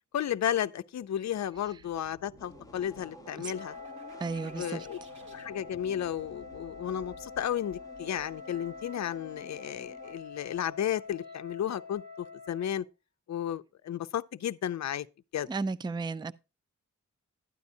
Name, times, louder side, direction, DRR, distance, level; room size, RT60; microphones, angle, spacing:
voice 1, 0.1-3.7 4.6-5.0 5.3-12.9 13.3-15.1 15.3-15.5, left 10 dB, 65° left, 0.5 m, -33 dB
sound 1, 1.4-9.1, left 1 dB, 90° right, 2.7 m, -53 dB
sound 2, 2.4-10.1, right 1 dB, 10° left, 0.8 m, -53 dB
Wind instrument woodwind instrument, 3.5-12.9, left 4 dB, 35° left, 1.0 m, -46 dB
voice 2, 4.2-4.9 15.5-16.3, right 4 dB, 15° right, 0.4 m, -34 dB
12.5 x 9.3 x 2.7 m
cardioid pair, 65°, 30 cm